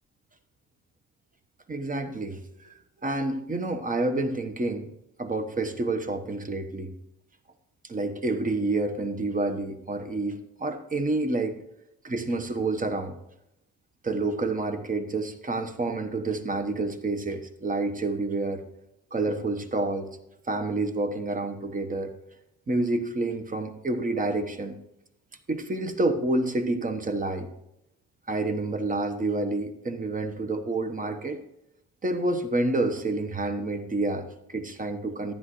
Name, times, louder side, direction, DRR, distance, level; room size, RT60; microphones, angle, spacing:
voice 1, 1.7-4.9 5.2-6.9 7.8-11.6 12.0-13.1 14.0-18.6 19.1-20.1 20.5-22.1 22.7-24.8 25.5-27.5 28.3-31.4 32.0-35.3, right 2 dB, 25° right, 6 dB, 1.1 m, -28 dB
11.0 x 10.0 x 3.1 m, 0.81 s
cardioid pair, 90°, 30 cm